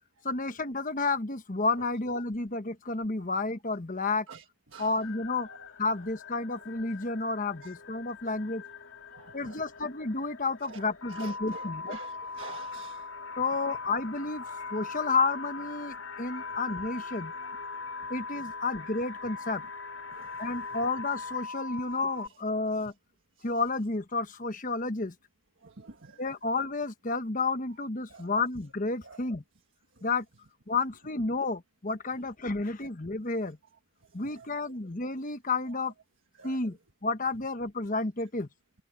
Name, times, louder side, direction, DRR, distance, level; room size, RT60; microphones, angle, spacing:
voice 1, 0.2-4.3 4.8-5.5 5.8-8.6 9.3-12.0 13.4-14.4 14.7-17.3 18.1-19.6 20.4-22.9 23.4-25.1 26.2-29.4 30.0-30.2 30.7-33.6 34.1-35.9 36.4-38.5, left 3 dB, 40° left, 1.2 m, -31 dB
sound 1, 5.0-21.5, left 6 dB, 70° left, 2.8 m, -48 dB
voice 2, 9.1-9.7 10.6-13.1 16.4-16.5 17.4-17.6 18.6-18.7 20.1-20.5 22.8-22.9 23.4-23.5 25.6-26.2 28.1-28.3 29.0-29.3 34.2-34.7 35.7-35.8 36.4-36.6, right 4 dB, 65° right, 1.5 m, -48 dB
sound 2, 11.0-22.3, left 3 dB, 85° left, 6.9 m, -40 dB
head